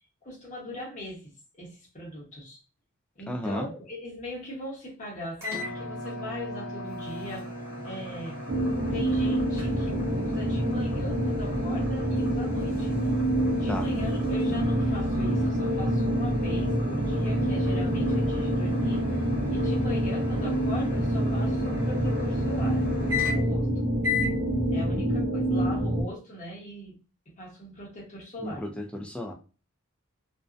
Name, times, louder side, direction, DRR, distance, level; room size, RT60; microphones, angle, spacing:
voice 1, 0.2-1.3 1.6-2.6 3.2-7.5 7.8-8.4 8.9-12.9 13.5-19.2 19.5-22.8 23.3-23.7 24.7-27.0 27.3-28.6, left 1 dB, 35° left, -3 dB, 1.0 m, -40 dB
voice 2, 3.3-3.7 13.7-13.9 24.8-25.2 28.4-29.3, left 1 dB, 5° left, 2 dB, 0.3 m, -34 dB
sound 1, 5.4-23.6 24.0-24.4, left 2 dB, 10° right, 1.0 m, -36 dB
sound 2, 8.5-26.0, right 1 dB, 55° right, 0.7 m, -27 dB
2.5 x 2.1 x 2.4 m, 0.34 s
head